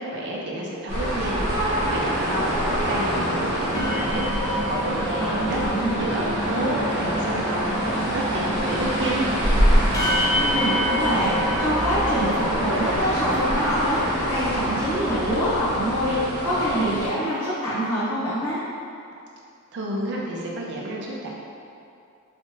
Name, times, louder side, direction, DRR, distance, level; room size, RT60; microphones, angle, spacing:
voice 1, 0.0-5.6 5.9-9.3 19.7-21.3, right 1 dB, 50° right, -3 dB, 0.5 m, -30 dB
sound 1, 0.9-17.1, equal, 35° right, 1.3 m, -25 dB
sound 2, 3.6-13.1 13.6-13.7 14.0-14.3, equal, 15° left, 0.3 m, -29 dB
voice 2, 5.2-6.0 10.3-14.0 14.3-18.6, equal, 85° left, -11 dB, 0.9 m, -25 dB
3.3 x 3.1 x 2.9 m, 2.5 s
head